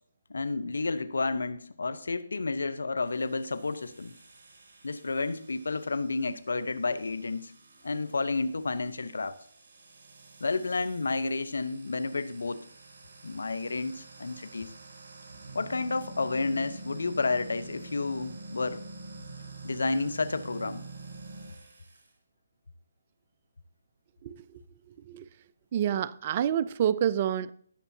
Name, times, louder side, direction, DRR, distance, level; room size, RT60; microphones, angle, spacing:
voice 1, 0.3-4.1 4.8-7.5 7.8-9.4 10.4-12.7 13.2-14.7 15.5-18.8 19.6-20.8, left 3 dB, 75° left, 0.9 m, -31 dB
sound 1, 3.0-22.1, right 3 dB, 55° right, 3.1 m, -48 dB
voice 2, 24.2-25.3 25.7-27.5, right 10 dB, 35° right, 0.4 m, -29 dB
18.5 x 7.0 x 2.8 m
figure-of-eight pair, 150°, 0 cm